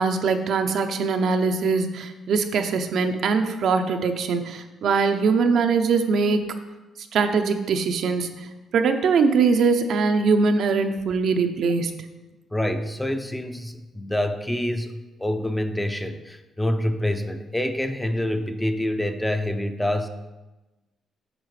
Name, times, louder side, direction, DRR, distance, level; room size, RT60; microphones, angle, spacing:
voice 1, 0.0-6.4 7.1-8.3 8.7-11.9, right 4 dB, 70° right, 6 dB, 0.6 m, -22 dB
voice 2, 12.5-20.1, left 1 dB, 10° left, 7 dB, 0.5 m, -26 dB
8.8 x 5.6 x 3.2 m, 1.1 s
cardioid pair, 90°, 0 cm